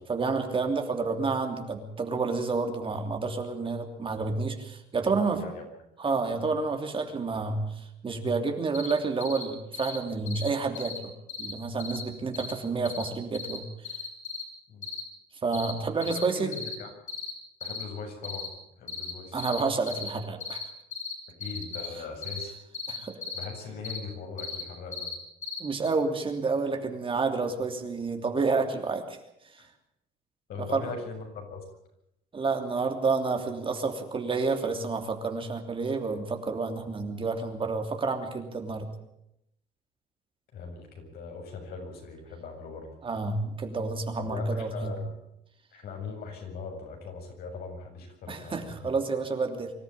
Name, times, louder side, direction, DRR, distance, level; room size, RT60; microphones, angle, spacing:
voice 1, 0.1-5.4 6.0-11.1 11.4-13.6 15.4-16.5 19.3-20.7 22.9-23.2 25.6-29.2 29.5-29.7 30.6-30.9 32.3-38.9 43.0-45.0 48.3-49.7, right 4 dB, 30° right, 5 dB, 3.1 m, -29 dB
voice 2, 5.2-5.7 14.7-14.9 16.0-16.9 17.6-18.5 18.8-19.4 21.4-22.5 23.3-25.1 30.5-31.6 40.5-42.9 44.2-45.1 45.7-48.9, left 4 dB, 65° left, 2 dB, 7.5 m, -40 dB
sound 1, 8.7-8.9 9.2-9.4 9.7-10.0 10.3-10.5 10.8-11.0 11.3-11.5 11.8-12.0 12.3-12.5 12.9-13.1 13.3-13.6 13.8-14.4 14.8-15.0 15.5-15.7 16.0-16.2 16.5-16.8 17.1-17.3 17.6-17.8 18.2-18.5 18.9-19.1 19.4-19.6 19.9-20.1 20.4-20.6 20.9-21.1 21.4-21.9 22.2-22.4 22.7-23.4 23.8-24.0 24.4-24.6 24.9-25.2 25.4-25.6 25.9-26.0, left 6 dB, 50° left, 6.1 m, -36 dB
25.0 x 13.0 x 9.1 m, 0.81 s
cardioid pair, 110°, 17 cm